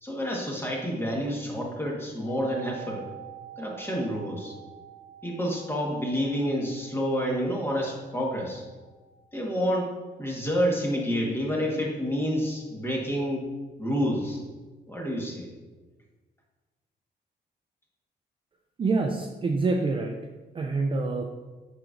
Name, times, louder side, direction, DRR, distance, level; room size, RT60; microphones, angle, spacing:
voice 1, 0.0-3.0 3.6-4.5 5.2-8.6 9.3-9.9 10.2-13.5 13.8-14.4 14.9-15.5, equal, 15° left, -2 dB, 1.3 m, -28 dB
sound 1, 2.2-12.0 12.2-12.3, right 8 dB, 65° left, 1.8 m, -48 dB
voice 2, 18.8-20.2 20.5-21.2, right 3 dB, 30° right, 2 dB, 0.4 m, -26 dB
7.6 x 5.1 x 2.5 m, 1.3 s
wide cardioid pair, 140°, 18 cm